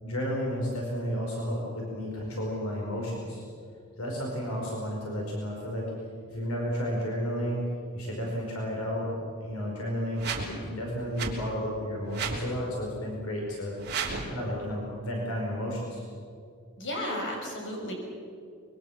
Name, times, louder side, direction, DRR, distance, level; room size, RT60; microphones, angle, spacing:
voice 1, 0.0-3.4 4.0-5.8 6.3-7.6 7.9-9.1 9.4-13.8 14.3-16.0, equal, 75° left, -2 dB, 5.2 m, -32 dB
sound 1, 10.2-10.5 11.2-11.3 12.1-12.4 13.8-14.3, right 5 dB, 50° right, 3.3 m, -32 dB
voice 2, 16.8-17.9, left 1 dB, 60° left, 1 dB, 6.4 m, -33 dB
25.0 x 23.0 x 7.3 m, 2.4 s
head